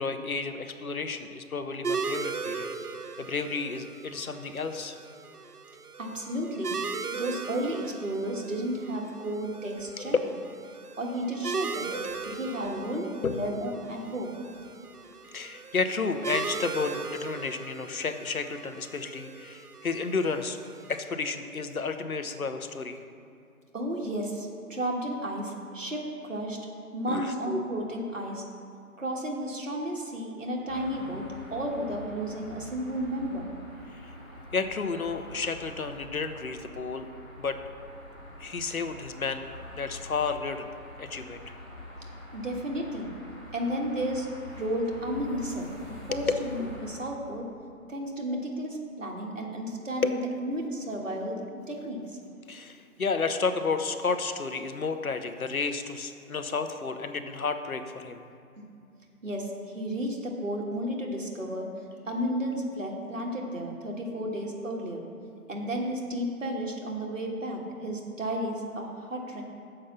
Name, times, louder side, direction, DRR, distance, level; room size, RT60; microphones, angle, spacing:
voice 1, 0.0-5.0 10.0-10.2 11.9-12.4 13.2-13.4 15.3-20.6 20.9-23.0 27.1-27.3 33.9-34.1 34.5-37.1 37.4-37.6 38.4-39.5 39.8-40.7 41.0-41.4 46.1-46.2 50.0-50.2 52.5-58.2, left 4 dB, 65° left, 8 dB, 0.8 m, -32 dB
sound 1, 1.8-21.0, right 5 dB, 80° right, 0.7 m, -38 dB
voice 2, 6.0-6.7 7.1-10.2 11.0-11.9 12.2-14.3 23.7-26.6 26.9-28.4 29.0-31.2 31.5-33.5 42.3-43.1 43.5-44.3 44.6-47.4 47.9-51.4 51.7-52.2 59.2-61.7 62.0-65.0 65.5-69.4, equal, 55° right, 0 dB, 1.5 m, -32 dB
sound 2, 30.7-47.0, equal, 5° left, 1.4 m, -45 dB
6.8 x 5.3 x 7.0 m, 2.5 s
figure-of-eight pair, 155°, 45 cm